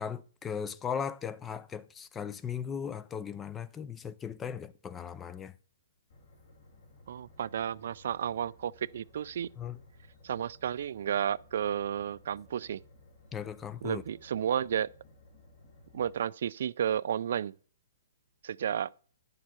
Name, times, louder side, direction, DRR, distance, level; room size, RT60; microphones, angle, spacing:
voice 1, 0.0-5.5 9.6-9.8 13.3-14.0, left 7 dB, 15° left, 0.4 m, -37 dB
sound 1, 6.1-16.2, left 2 dB, 60° left, 2.8 m, -58 dB
voice 2, 7.1-9.5 10.2-12.8 13.8-14.9 15.9-17.5 18.4-18.9, right 9 dB, 60° right, 0.3 m, -32 dB
10.5 x 6.7 x 4.3 m
hypercardioid pair, 160°, 0 cm